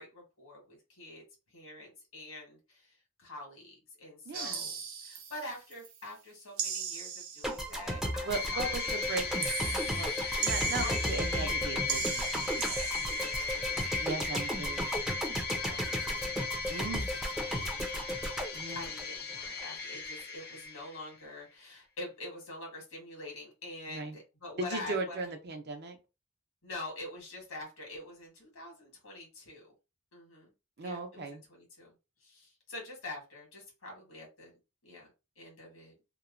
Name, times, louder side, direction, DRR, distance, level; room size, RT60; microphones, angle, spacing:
voice 1, 0.0-9.0 10.8-11.6 13.0-14.0 15.6-16.3 17.3-18.3 18.7-25.3 26.6-29.7 30.1-30.5 30.8-34.5 34.8-35.9, left 2 dB, 75° left, 0 dB, 1.5 m, -46 dB
voice 2, 4.3-4.7 8.2-10.1 10.4-12.9 14.0-14.9 16.7-17.1 18.5-18.9 23.9-24.2 24.6-26.0 30.8-31.4, right 3 dB, 50° right, 4 dB, 0.6 m, -38 dB
sound 1, 4.3-6.0 6.6-7.8 9.4-11.5 11.9-13.5, right 7 dB, 85° right, 0.7 m, -38 dB
sound 2, 7.4-19.6, equal, ahead, 0.5 m, -35 dB
sound 3, 8.3-21.1, left 5 dB, 50° left, 0.7 m, -36 dB
2.9 x 2.2 x 2.5 m, 0.28 s
head